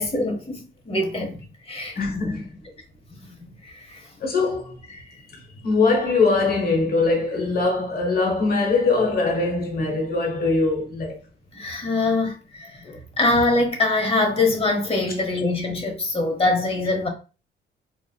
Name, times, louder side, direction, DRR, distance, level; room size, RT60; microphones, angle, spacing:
voice 1, 0.0-1.4 1.7-2.0 3.4-4.0 4.9-5.0 11.5-12.8 13.2-17.1, left 2 dB, 30° left, 1.1 m, -23 dB
voice 2, 2.0-2.5 4.2-4.7 5.6-11.2 12.8-13.0, left 3 dB, 50° left, 1.2 m, -22 dB
4.0 x 2.3 x 2.3 m
cardioid pair, 90°, 20 cm